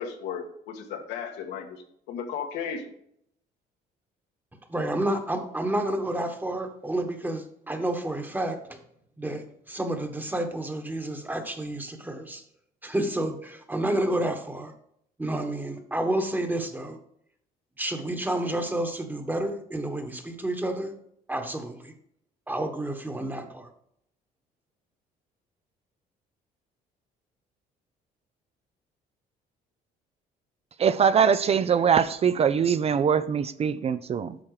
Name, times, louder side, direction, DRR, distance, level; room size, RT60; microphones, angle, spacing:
voice 1, 0.0-2.9, left 7 dB, 85° left, 4 dB, 1.5 m, -35 dB
voice 2, 4.7-8.8 9.2-12.4 12.8-14.7 15.2-17.0 17.8-20.9 21.3-21.9 22.5-23.7, right 1 dB, 10° right, 6 dB, 1.3 m, -30 dB
voice 3, 30.8-34.4, right 7 dB, 35° right, 13 dB, 0.5 m, -22 dB
8.8 x 5.9 x 4.9 m, 0.71 s
cardioid pair, 110°, 17 cm